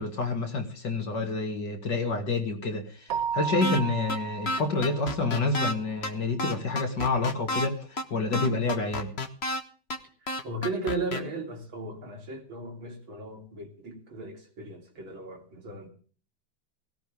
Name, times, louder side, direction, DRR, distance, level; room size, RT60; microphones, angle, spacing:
voice 1, 0.0-9.1, left 3 dB, 60° left, 3.2 m, -28 dB
Keyboard (musical), 3.1-5.5, right 7 dB, 55° right, 1.1 m, -34 dB
sound 1, 3.6-3.8 4.1-4.2 4.5-5.7 6.0-6.1 6.4-7.7 8.0-8.1 8.3-9.6 9.9-10.0 10.3-11.2, left 1 dB, 35° left, 1.5 m, -30 dB
voice 2, 10.2-15.9, right 3 dB, 80° right, 4.2 m, -36 dB
17.5 x 17.0 x 3.5 m
omnidirectional pair, 2.2 m